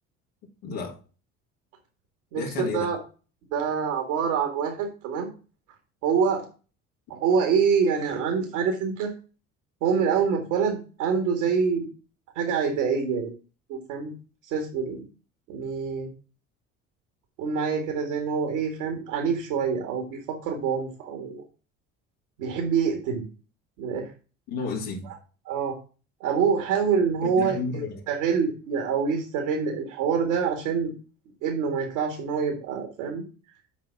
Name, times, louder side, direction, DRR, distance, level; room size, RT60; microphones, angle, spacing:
voice 1, 0.6-1.0 2.3-2.9 24.5-25.1 27.2-28.1, left 4 dB, 75° left, 2.5 m, -32 dB
voice 2, 2.3-3.0 3.5-5.3 6.0-6.5 7.1-9.1 9.8-11.9 12.4-13.3 13.7-14.1 14.4-15.0 15.5-16.1 17.4-21.4 22.4-23.3 23.8-24.1 25.5-25.8 26.2-27.6 28.1-30.9 31.4-33.2, right 6 dB, 75° right, 2.0 m, -26 dB
7.4 x 4.8 x 5.6 m
hypercardioid pair, 65°, 37 cm